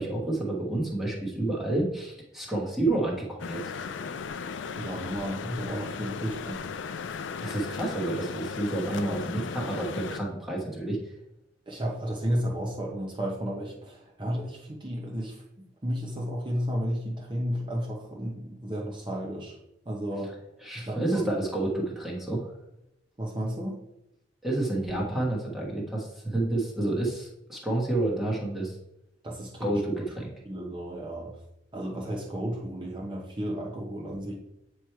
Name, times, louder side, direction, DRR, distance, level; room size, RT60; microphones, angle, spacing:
voice 1, 0.0-3.6 7.4-11.0 20.6-22.5 24.4-28.8 29.6-30.3, right 2 dB, ahead, -4 dB, 1.2 m, -29 dB
sound 1, 3.4-10.2, left 5 dB, 80° left, 0.4 m, -36 dB
voice 2, 4.7-6.7 11.7-15.4 15.8-19.6 19.8-20.3 20.7-21.3 23.2-23.8 29.2-29.8 30.4-31.4 31.7-34.3, equal, 25° right, -2 dB, 0.9 m, -33 dB
7.8 x 3.2 x 4.5 m, 0.85 s
head